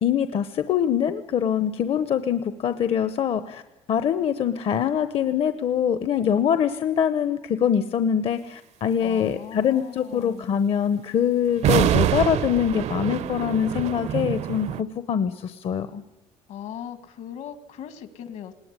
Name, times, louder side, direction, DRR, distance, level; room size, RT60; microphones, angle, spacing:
voice 1, 0.0-3.6 3.9-16.0, left 8 dB, 45° left, 11 dB, 0.9 m, -24 dB
voice 2, 9.0-10.6 16.5-18.5, left 9 dB, 70° left, 11 dB, 2.0 m, -39 dB
sound 1, 11.6-14.8, right 11 dB, 60° right, 0.7 m, -25 dB
20.5 x 18.0 x 9.7 m, 1.0 s
cardioid pair, 130°, 13 cm